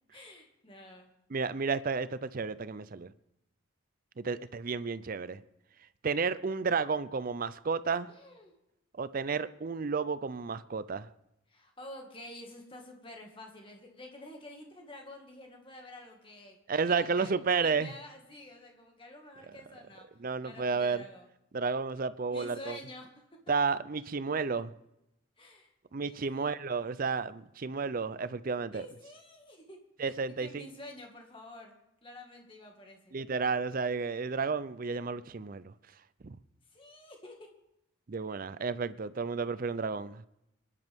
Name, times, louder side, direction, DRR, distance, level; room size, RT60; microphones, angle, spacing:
voice 1, 0.1-1.1 8.1-8.5 11.5-16.6 16.9-17.3 17.6-20.1 20.4-21.3 22.3-23.1 25.4-25.7 26.1-26.6 28.7-31.7 32.0-33.2 36.7-37.5, left 1 dB, 25° left, 2.0 m, -49 dB
voice 2, 1.3-3.1 4.2-5.4 6.0-8.1 9.0-11.1 16.7-17.9 20.2-21.0 21.5-22.8 23.5-24.7 25.9-28.8 30.0-30.6 33.1-35.7 36.2-36.4 38.1-40.2, right 5 dB, 40° right, 0.5 m, -32 dB
25.5 x 10.5 x 3.6 m
head